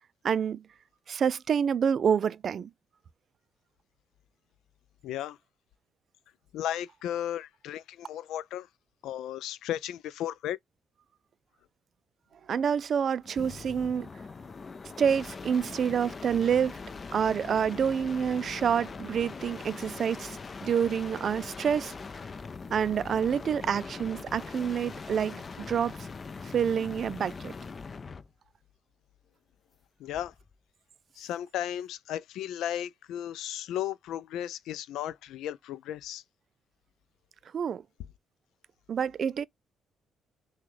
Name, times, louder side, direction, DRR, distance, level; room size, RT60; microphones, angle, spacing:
voice 1, 0.2-0.6 1.1-2.7 12.5-14.1 15.0-16.8 17.1-21.9 22.7-26.1 26.4-27.5 37.5-37.8 38.9-39.4, right 7 dB, 55° right, 0.3 m, -28 dB
voice 2, 5.0-5.4 6.5-8.7 9.0-10.6 30.0-30.3 31.2-36.2, left 11 dB, 85° left, 0.4 m, -35 dB
sound 1, 13.2-28.3 30.1-30.5, left 4 dB, 35° left, 0.6 m, -42 dB
6.0 x 2.3 x 3.2 m
cardioid pair, 90°, 0 cm